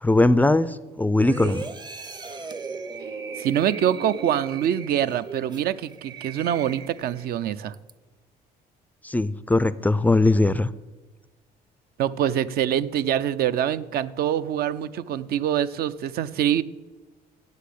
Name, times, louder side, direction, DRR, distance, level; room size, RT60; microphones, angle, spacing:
voice 1, 0.0-1.6 9.0-10.7, left 2 dB, 10° left, 16 dB, 0.3 m, -20 dB
sound 1, 1.2-7.3 7.7-7.9, right 5 dB, 25° right, 0.6 m, -37 dB
voice 2, 3.4-7.7 12.0-16.6, right 10 dB, 65° right, 14 dB, 0.5 m, -25 dB
8.3 x 7.6 x 8.3 m, 1.2 s
cardioid pair, 110°, 17 cm